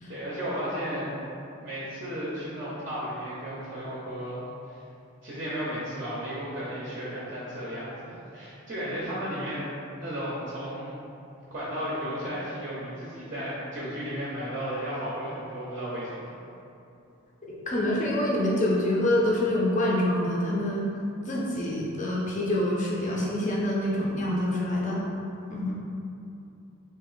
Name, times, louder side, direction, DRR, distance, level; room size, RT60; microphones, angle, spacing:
voice 1, 0.1-1.2 1.6-4.4 4.7-4.8 5.2-9.7 10.0-10.9 11.5-16.3, equal, 35° right, -8 dB, 0.5 m, -34 dB
voice 2, 17.4-20.9 21.3-25.0 25.5-25.7, left 1 dB, 35° left, -4 dB, 0.5 m, -26 dB
2.9 x 2.6 x 3.8 m, 2.7 s
head